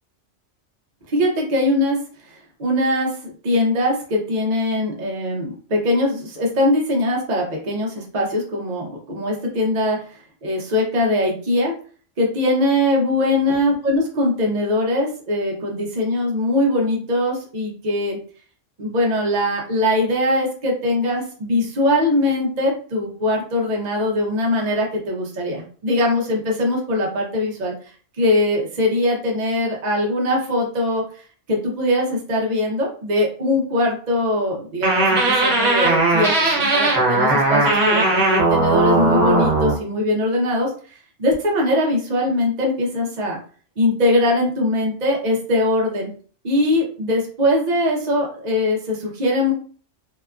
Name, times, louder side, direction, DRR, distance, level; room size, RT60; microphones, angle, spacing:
voice 1, 1.1-2.0 2.6-3.2 3.4-11.7 12.2-18.2 18.8-27.7 28.2-40.7 41.2-43.4 43.8-46.1 46.4-49.5, left 1 dB, 45° right, -1 dB, 0.6 m, -21 dB
sound 1, 34.8-39.8, right 2 dB, 60° right, 1.0 m, -18 dB
2.9 x 2.2 x 2.3 m, 0.42 s
omnidirectional pair, 1.2 m